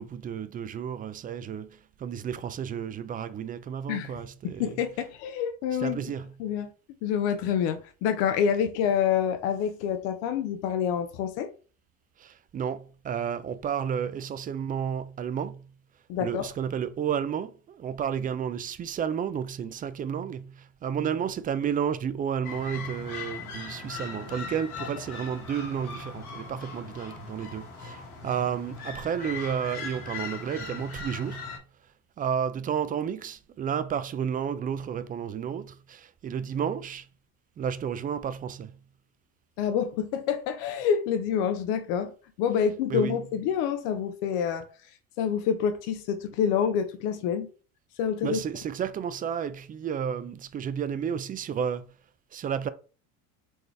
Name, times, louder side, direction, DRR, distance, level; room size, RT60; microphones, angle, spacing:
voice 1, 0.0-4.7 5.8-6.3 12.2-15.7 16.2-31.6 32.2-37.1 37.6-38.8 42.9-43.2 48.2-51.9 52.3-52.7, right 8 dB, 20° right, 0.3 m, -32 dB
voice 2, 4.4-6.0 6.4-6.7 7.0-11.5 16.1-16.5 24.8-24.9 39.6-42.1 42.4-44.7 45.2-47.5 48.0-48.4, left 8 dB, 65° left, 0.8 m, -27 dB
sound 1, 22.4-31.6, left 4 dB, 90° left, 1.8 m, -39 dB
4.5 x 3.2 x 3.3 m
hypercardioid pair, 85°, 43 cm